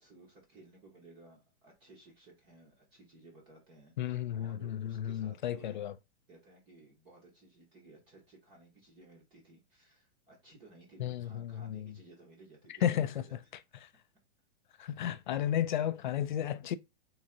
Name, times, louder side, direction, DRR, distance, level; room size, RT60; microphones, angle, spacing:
voice 1, 0.0-5.8 6.3-13.4, right 2 dB, 15° right, 0.7 m, -57 dB
voice 2, 4.0-5.9 11.0-11.9 12.8-13.4 13.8-13.9 14.8-16.8, left 10 dB, 50° left, 0.4 m, -33 dB
3.8 x 2.7 x 4.3 m
supercardioid pair, 175°, 32 cm